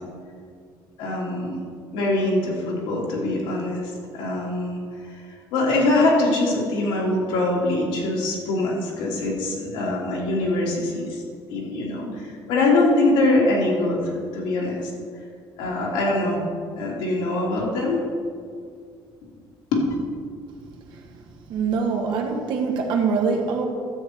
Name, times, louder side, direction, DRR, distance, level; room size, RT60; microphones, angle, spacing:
voice 1, 1.0-1.6 1.9-4.8 5.1-11.2 11.5-14.9 15.6-16.4 16.8-18.0 19.7-19.8, left 2 dB, 90° left, -4 dB, 3.1 m, -23 dB
voice 2, 21.5-23.6, right 5 dB, 65° right, 2 dB, 1.5 m, -23 dB
12.5 x 8.0 x 4.5 m, 2.1 s
cardioid pair, 145°, 9 cm